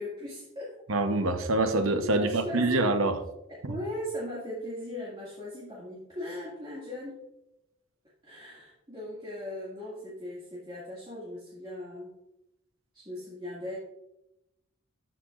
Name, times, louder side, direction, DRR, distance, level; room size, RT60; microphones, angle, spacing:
voice 1, 0.0-0.8 2.0-3.0 3.5-7.2 8.2-12.1 12.9-13.8, left 1 dB, 25° right, -8 dB, 2.0 m, -38 dB
voice 2, 0.9-3.2 3.6-3.7, right 2 dB, 80° right, 8 dB, 0.9 m, -25 dB
13.0 x 5.8 x 2.5 m, 0.86 s
head